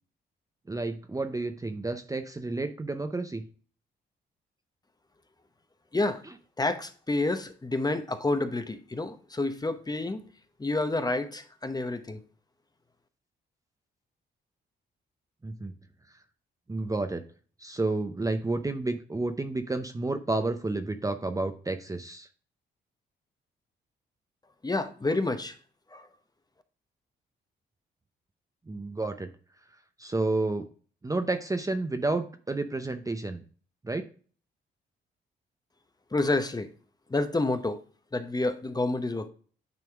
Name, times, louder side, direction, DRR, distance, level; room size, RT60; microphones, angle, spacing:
voice 1, 0.7-3.4 15.4-15.7 16.7-17.2 17.6-22.3 28.7-29.3 30.0-30.7 31.0-33.4 33.8-34.1, right 2 dB, 15° right, 8 dB, 0.6 m, -30 dB
voice 2, 6.6-10.2 10.6-12.2 24.6-25.6 25.9-26.1 36.1-36.7 37.1-37.8 38.1-39.3, left 2 dB, 20° left, 9 dB, 0.8 m, -29 dB
9.4 x 3.5 x 3.4 m, 0.42 s
supercardioid pair, 60°, 20 cm